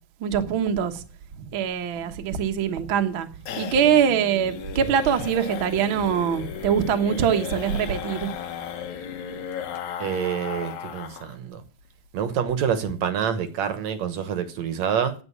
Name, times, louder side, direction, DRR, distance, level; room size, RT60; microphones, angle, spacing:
voice 1, 0.2-1.0 1.4-3.3 3.6-8.3, right 8 dB, 55° right, 1.6 m, -23 dB
sound 1, 2.3-11.4 11.6-11.7 12.1-12.2 12.5-12.9, left 8 dB, 70° left, 2.6 m, -35 dB
voice 2, 10.0-11.6 12.1-15.2, right 8 dB, 70° right, 2.2 m, -27 dB
9.7 x 9.3 x 8.5 m
omnidirectional pair, 3.6 m